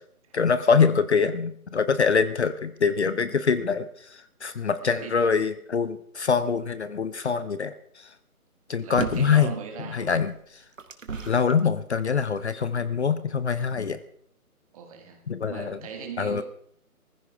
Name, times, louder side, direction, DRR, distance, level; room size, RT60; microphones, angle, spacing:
voice 1, 0.3-3.9 4.4-7.7 8.7-9.5 9.9-10.3 11.3-14.0 15.3-15.8 16.2-16.4, left 6 dB, 50° left, 13 dB, 0.9 m, -24 dB
voice 2, 4.8-5.2 8.8-10.2 14.7-16.4, right 7 dB, 25° right, 4 dB, 2.1 m, -39 dB
sound 1, 9.0-9.5 10.2-11.6 12.4-12.5, right 5 dB, 60° right, 1.6 m, -34 dB
18.0 x 15.0 x 3.5 m, 0.65 s
figure-of-eight pair, 150°, 44 cm